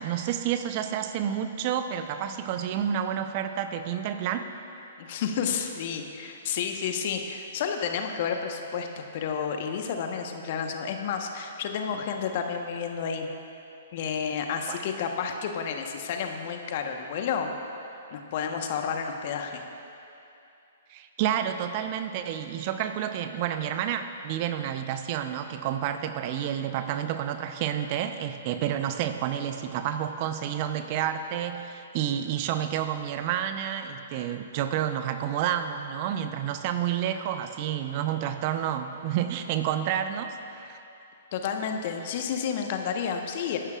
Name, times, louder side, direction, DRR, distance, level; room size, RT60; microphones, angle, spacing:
voice 1, 0.0-4.5 14.7-14.8 20.9-40.8, right 10 dB, 40° right, 9 dB, 0.7 m, -30 dB
voice 2, 5.0-13.3 13.9-17.5 17.8-19.6 41.3-43.6, left 7 dB, 50° left, 4 dB, 1.2 m, -31 dB
23.5 x 11.5 x 2.5 m, 2.7 s
figure-of-eight pair, 120°, 0 cm